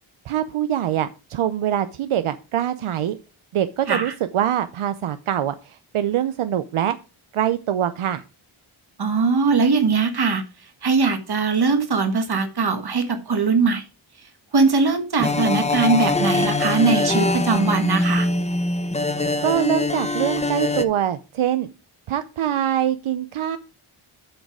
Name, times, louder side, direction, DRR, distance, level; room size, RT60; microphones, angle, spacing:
voice 1, 0.3-3.2 3.5-7.0 7.3-8.2 19.4-21.7 22.1-23.6, right 11 dB, 80° right, 12 dB, 0.6 m, -24 dB
voice 2, 9.0-10.4 10.8-13.8 14.5-18.3, right 4 dB, 50° right, 8 dB, 1.4 m, -20 dB
sound 1, 15.2-20.8, left 2 dB, 15° left, 0.6 m, -23 dB
7.9 x 6.5 x 4.8 m, 0.32 s
wide cardioid pair, 160°, 50 cm